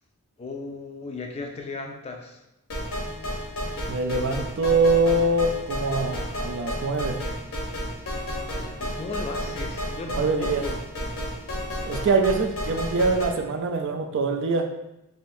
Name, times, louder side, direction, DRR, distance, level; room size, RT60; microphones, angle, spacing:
voice 1, 0.4-2.4 8.8-10.8, left 3 dB, 30° left, 2 dB, 0.3 m, -36 dB
sound 1, 2.7-13.3, equal, 70° left, 0.8 m, -32 dB
voice 2, 3.9-7.2 10.1-10.6 11.9-14.7, right 3 dB, 55° right, 5 dB, 0.3 m, -23 dB
3.4 x 2.5 x 2.6 m, 0.87 s
head